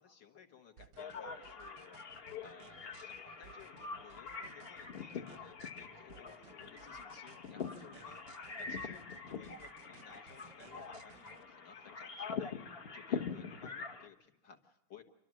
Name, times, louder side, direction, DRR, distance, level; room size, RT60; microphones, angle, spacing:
voice 1, 0.0-2.0 2.4-8.2 8.6-12.6 12.9-15.0, left 6 dB, 60° left, 5 dB, 2.2 m, -58 dB
sound 1, 0.8-11.4, right 9 dB, 85° right, 1.7 m, -60 dB
sound 2, 1.0-14.1, left 5 dB, 40° left, 0.9 m, -44 dB
28.5 x 12.5 x 7.5 m, 0.94 s
omnidirectional pair, 2.2 m